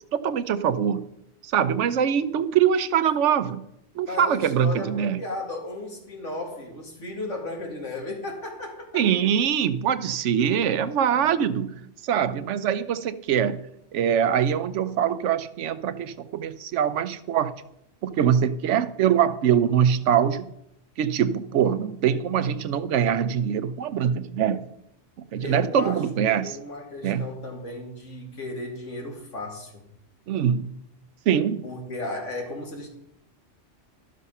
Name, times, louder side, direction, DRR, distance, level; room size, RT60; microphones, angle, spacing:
voice 1, 0.1-1.1 1.4-3.6 4.0-5.2 8.9-13.6 13.9-17.5 18.0-20.5 21.0-24.7 25.3-26.6 27.0-27.3 30.3-30.7 31.3-31.7, right 8 dB, 75° right, 13 dB, 1.0 m, -23 dB
voice 2, 4.1-9.0 25.4-26.0 26.4-29.8 31.6-32.9, left 2 dB, 80° left, 1 dB, 2.5 m, -35 dB
12.0 x 6.5 x 5.6 m, 0.79 s
omnidirectional pair, 1.2 m